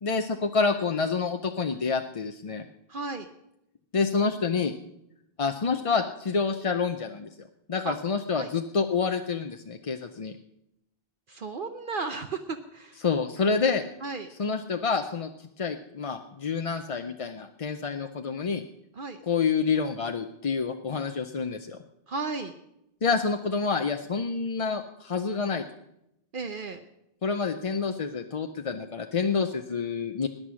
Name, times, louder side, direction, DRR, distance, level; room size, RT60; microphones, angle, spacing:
voice 1, 0.0-2.7 3.9-4.7 5.4-7.3 7.7-10.4 13.0-13.8 14.4-18.6 19.3-21.8 23.0-25.6 27.2-30.3, left 5 dB, 40° left, 6 dB, 0.6 m, -28 dB
voice 2, 2.9-3.3 7.8-8.0 8.4-8.5 11.3-13.0 14.0-14.3 19.0-19.2 22.1-22.5 26.3-26.8, right 4 dB, 60° right, 6 dB, 0.9 m, -34 dB
18.5 x 10.0 x 6.2 m, 0.85 s
omnidirectional pair, 1.0 m